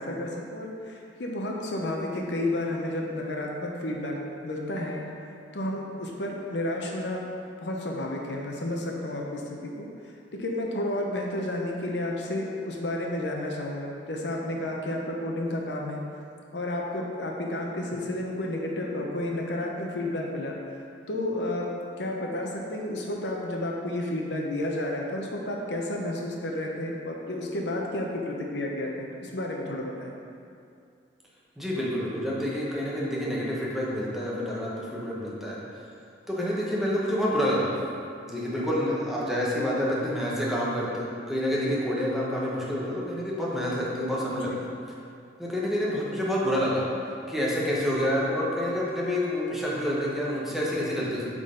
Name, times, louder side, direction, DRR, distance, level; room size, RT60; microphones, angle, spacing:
voice 1, 0.0-5.1 5.5-7.2 7.6-9.9 10.3-16.0 16.5-20.5 21.1-21.7 22.0-30.2 44.4-44.6, left 1 dB, 70° left, 0 dB, 0.7 m, -31 dB
voice 2, 31.6-35.6 36.3-37.7 38.3-44.7 45.4-46.9 47.3-51.3, equal, ahead, -6 dB, 1.0 m, -28 dB
8.1 x 3.8 x 3.8 m, 2.4 s
head